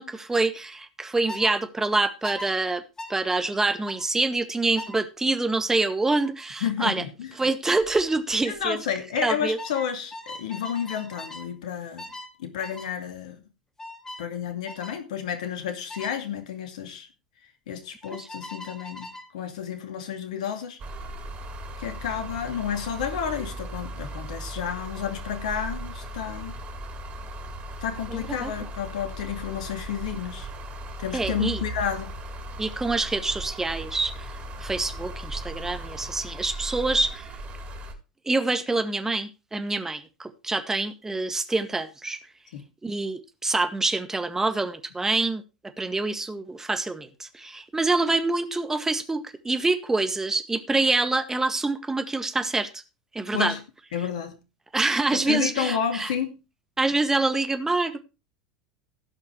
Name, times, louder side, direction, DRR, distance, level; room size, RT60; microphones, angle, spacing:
voice 1, 0.0-2.8 3.1-7.0 7.4-8.8 9.2-9.6 18.2-18.3 28.1-28.5 31.1-31.6 32.6-34.3 34.6-37.3 38.2-42.2 42.8-45.4 45.8-52.7 53.1-53.5 54.7-56.1 56.8-58.0, right 3 dB, 10° right, 1.7 m, -26 dB
sound 1, 1.3-1.5 2.2-2.5 3.0-3.2 3.9-4.1 4.8-5.0 6.1-6.3 7.8-8.0 8.3-8.7 9.6-11.5 12.0-12.3 12.6-12.9 13.8-14.3 14.7-15.0 15.9-16.2 18.0-19.3, left 1 dB, 15° left, 2.9 m, -40 dB
voice 2, 6.6-7.3 8.5-12.1 12.4-13.4 14.2-17.1 17.7-20.8 21.8-26.5 27.8-30.5 31.0-32.1 42.5-42.6 53.3-53.6 53.9-54.4 55.1-56.4, left 8 dB, 65° left, 2.4 m, -31 dB
sound 2, 20.8-37.9, right 1 dB, 35° right, 3.7 m, -37 dB
16.5 x 5.7 x 4.7 m
figure-of-eight pair, 80°, 4 cm